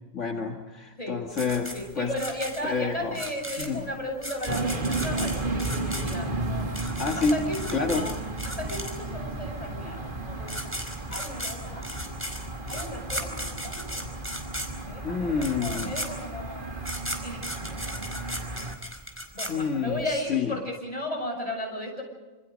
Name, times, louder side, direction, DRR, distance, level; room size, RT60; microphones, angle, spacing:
voice 1, 0.1-2.1 2.6-3.2 3.6-3.9 7.0-8.1 15.0-15.9 19.5-20.6, left 4 dB, 70° left, 2 dB, 2.2 m, -28 dB
voice 2, 1.0-1.3 1.7-6.7 7.2-8.2 8.4-10.8 11.1-11.9 12.7-14.1 14.8-16.7 17.2-18.3 19.2-22.0, left 1 dB, 30° left, 1 dB, 8.1 m, -35 dB
sound 1, 1.4-9.3 10.1-10.2 10.4-20.1, equal, 10° right, 4.9 m, -36 dB
sound 2, 4.5-18.7, right 2 dB, 40° right, 2.2 m, -34 dB
28.0 x 27.5 x 5.2 m, 1.2 s
omnidirectional pair, 1.3 m